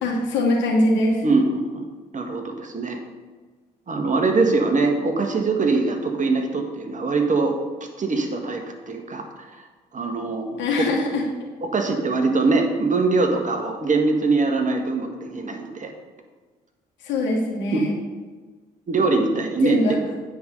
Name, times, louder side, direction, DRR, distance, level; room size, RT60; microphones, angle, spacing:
voice 1, 0.0-1.2 10.6-11.2 17.0-17.9 19.6-20.0, left 2 dB, 65° left, -2 dB, 2.4 m, -22 dB
voice 2, 1.2-1.8 2.1-3.0 3.9-7.5 8.0-9.3 9.5-9.6 9.9-10.6 11.6-15.9 17.7-17.8 18.9-19.8, right 3 dB, 40° right, 3 dB, 1.7 m, -22 dB
9.2 x 5.4 x 6.4 m, 1.4 s
hypercardioid pair, 50°, 20 cm